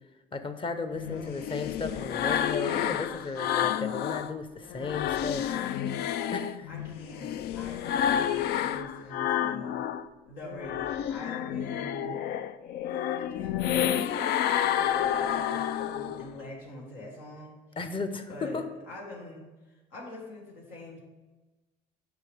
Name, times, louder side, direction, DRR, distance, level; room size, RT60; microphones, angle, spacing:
voice 1, 0.3-5.5 6.3-6.7 17.8-18.7, left 4 dB, 30° left, 9 dB, 0.8 m, -35 dB
sound 1, 0.9-4.3 4.7-10.1 10.4-16.3, left 10 dB, 65° left, 0.4 m, -30 dB
voice 2, 2.6-3.0 6.7-9.8 10.2-12.2 12.9-17.5 18.3-21.0, left 1 dB, 85° left, -3 dB, 1.6 m, -44 dB
8.0 x 5.7 x 3.5 m, 1.2 s
supercardioid pair, 80°, 18 cm